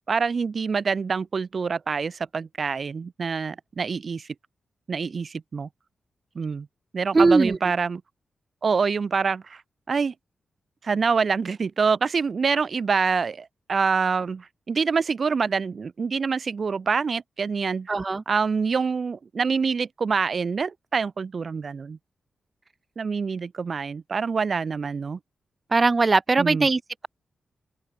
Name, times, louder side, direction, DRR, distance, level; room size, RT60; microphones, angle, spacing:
voice 1, 0.1-4.3 4.9-5.7 6.3-6.7 6.9-8.0 8.6-9.6 9.9-10.1 10.8-17.9 18.3-22.0 23.0-25.2 26.4-26.7, right 5 dB, 60° right, 3.0 m, -26 dB
voice 2, 7.1-7.6 17.9-18.2 25.7-27.1, right 3 dB, 40° right, 1.7 m, -20 dB
open air
supercardioid pair, 45°, 0 cm